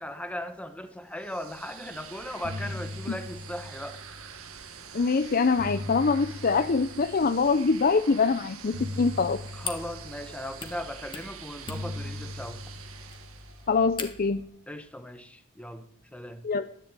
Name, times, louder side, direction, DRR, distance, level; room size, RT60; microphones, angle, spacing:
voice 1, 0.0-4.0 9.5-12.6 14.7-16.4, left 1 dB, 5° left, 1.1 m, -38 dB
sound 1, 1.1-13.9, right 6 dB, 80° right, 1.6 m, -46 dB
sound 2, 1.9-2.0 2.3-4.6 5.3-7.7 8.7-11.2 11.7-14.2, left 1 dB, 45° right, 1.7 m, -40 dB
voice 2, 4.9-9.4 13.7-14.4 16.4-16.7, left 4 dB, 45° left, 0.5 m, -24 dB
sound 3, 9.0-14.4, left 4 dB, 25° left, 1.6 m, -43 dB
11.5 x 10.5 x 8.9 m
head